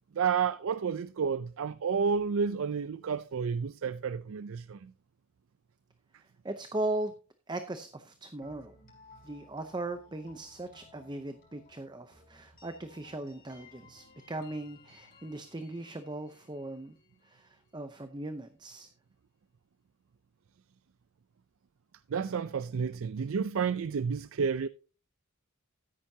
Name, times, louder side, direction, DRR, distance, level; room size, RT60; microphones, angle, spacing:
voice 1, 0.1-4.9 22.1-24.7, right 6 dB, 65° right, 0.4 m, -31 dB
voice 2, 6.4-7.1 7.5-8.7 9.2-16.9 17.2-18.9, right 2 dB, 20° right, 0.6 m, -38 dB
sound 1, 8.4-18.2, left 4 dB, 40° left, 5.6 m, -59 dB
13.5 x 10.0 x 2.8 m
head